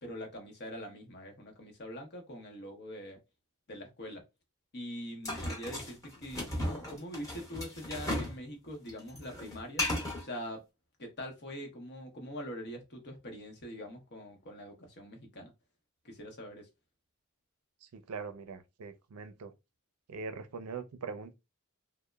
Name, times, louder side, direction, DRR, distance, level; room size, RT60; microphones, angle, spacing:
voice 1, 0.0-3.2 3.7-4.2 4.7-9.9 10.2-10.6 11.0-15.5 16.0-16.7, equal, 50° left, 0.8 m, -43 dB
sound 1, 5.2-8.4 8.7-10.2, left 1 dB, 15° left, 0.8 m, -35 dB
voice 2, 17.8-19.5 20.1-21.3, right 5 dB, 80° right, 0.5 m, -42 dB
2.9 x 2.1 x 2.2 m
head